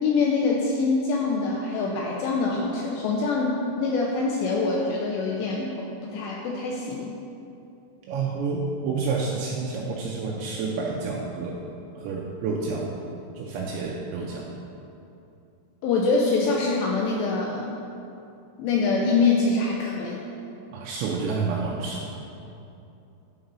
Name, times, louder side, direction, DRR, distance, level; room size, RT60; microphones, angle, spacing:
voice 1, 0.0-5.7 6.1-7.1 15.8-17.7 18.6-20.2, left 4 dB, 90° left, -2 dB, 2.4 m, -24 dB
voice 2, 8.1-11.6 12.0-12.9 13.4-14.5 20.7-22.1, right 4 dB, 90° right, -2 dB, 2.6 m, -29 dB
11.5 x 4.0 x 5.3 m, 2.8 s
omnidirectional pair, 5.7 m